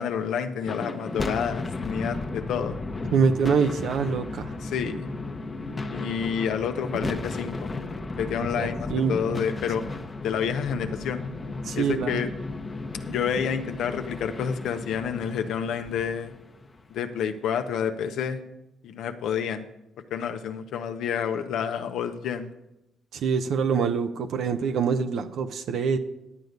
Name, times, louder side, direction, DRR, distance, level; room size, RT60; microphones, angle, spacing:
voice 1, 0.0-2.8 4.6-5.1 5.9-7.7 8.2-9.8 10.2-11.2 11.7-12.3 13.1-16.3 16.9-18.4 18.8-19.7 20.1-22.5, left 7 dB, 80° left, 7 dB, 0.8 m, -29 dB
sound 1, 0.6-17.0, left 3 dB, 30° left, 0.9 m, -34 dB
voice 2, 3.1-4.5 8.5-9.4 11.6-12.2 23.1-26.0, right 6 dB, 70° right, 7 dB, 0.7 m, -25 dB
11.0 x 8.0 x 5.2 m, 0.88 s
cardioid pair, 90°, 0 cm